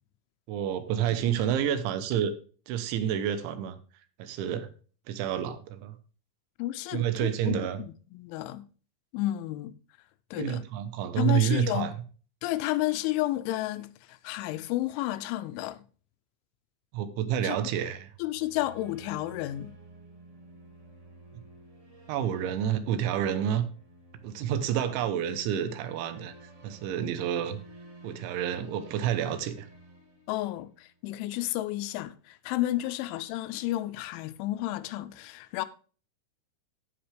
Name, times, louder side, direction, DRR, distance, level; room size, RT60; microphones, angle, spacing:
voice 1, 0.5-2.3 2.7-3.8 4.2-4.7 5.1-6.0 6.9-7.8 10.3-12.0 16.9-18.1 21.3-21.4 22.1-23.6 24.2-26.3 26.6-27.6 28.0-29.7, right 9 dB, 80° right, 3.2 m, -29 dB
voice 2, 6.6-7.6 8.1-8.7 9.1-9.7 10.3-10.6 11.2-11.9 12.4-15.8 17.4-17.6 18.2-19.7 30.3-35.7, left 15 dB, 85° left, 3.0 m, -31 dB
sound 1, 18.1-30.9, right 2 dB, 20° right, 2.4 m, -51 dB
15.5 x 5.9 x 3.3 m
omnidirectional pair, 5.5 m